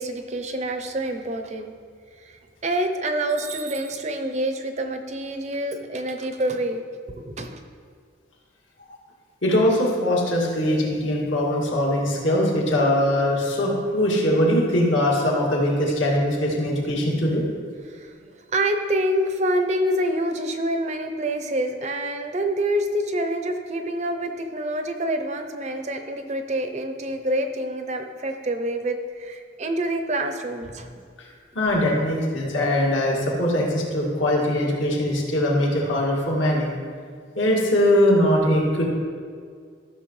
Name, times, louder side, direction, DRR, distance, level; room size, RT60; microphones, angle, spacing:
voice 1, 0.0-1.7 2.2-7.6 17.9-31.0 32.0-32.1, right 1 dB, 35° right, 6 dB, 0.6 m, -27 dB
voice 2, 9.4-17.4 31.2-31.3 31.5-36.7 37.4-38.9, left 1 dB, 80° left, -3 dB, 2.2 m, -21 dB
14.0 x 6.5 x 3.2 m, 2.1 s
head